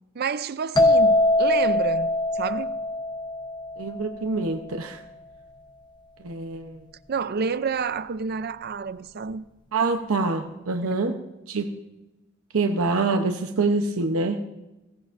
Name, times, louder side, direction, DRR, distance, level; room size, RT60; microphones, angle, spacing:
voice 1, 0.2-2.7 7.1-9.5 10.8-11.1, right 5 dB, 50° right, 0.5 m, -29 dB
sound 1, 0.8-4.4, left 1 dB, 20° left, 0.9 m, -22 dB
voice 2, 3.8-5.0 6.2-6.8 9.7-11.1 11.5-11.7 12.5-14.4, right 3 dB, 85° right, 0.8 m, -25 dB
17.0 x 16.5 x 2.6 m
head